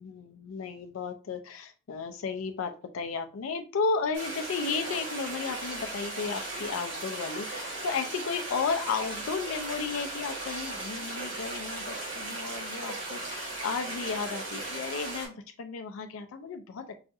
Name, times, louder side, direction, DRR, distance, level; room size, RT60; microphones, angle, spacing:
voice 1, 0.0-17.0, left 5 dB, 85° left, 7 dB, 0.4 m, -34 dB
sound 1, 4.1-15.3, right 2 dB, 65° right, 1.9 m, -37 dB
4.8 x 2.3 x 2.6 m, 0.35 s
head